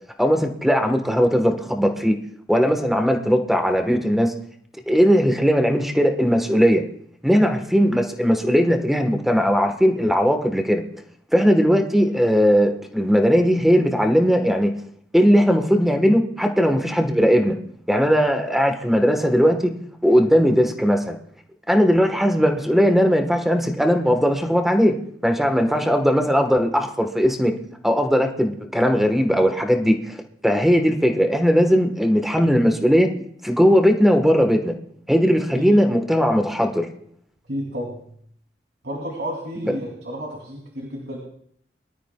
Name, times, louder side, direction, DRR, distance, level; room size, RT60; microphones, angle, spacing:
voice 1, 0.2-2.2 2.5-4.3 4.9-6.8 7.2-10.8 11.3-14.7 15.1-17.6 17.9-19.7 20.0-21.2 21.7-25.0 25.2-27.5 27.8-30.2 30.4-33.1 33.4-34.7 35.1-36.9 39.6-39.8, equal, ahead, 4 dB, 1.2 m, -18 dB
voice 2, 37.5-38.0 38.8-41.2, equal, 70° right, -2 dB, 2.9 m, -31 dB
23.0 x 12.5 x 2.3 m, 0.65 s
head